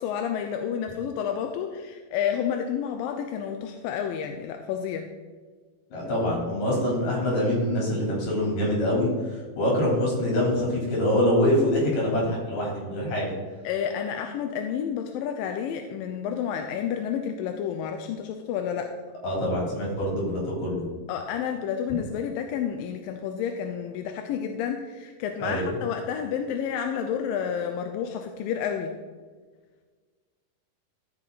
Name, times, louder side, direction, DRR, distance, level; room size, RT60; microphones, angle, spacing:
voice 1, 0.0-5.1 13.6-18.9 21.1-29.0, left 8 dB, 85° left, 5 dB, 2.3 m, -30 dB
voice 2, 5.9-9.1 9.6-13.3 19.2-20.8 25.4-25.7, left 1 dB, 65° left, -4 dB, 5.1 m, -25 dB
13.5 x 6.0 x 4.0 m, 1.5 s
omnidirectional pair, 4.1 m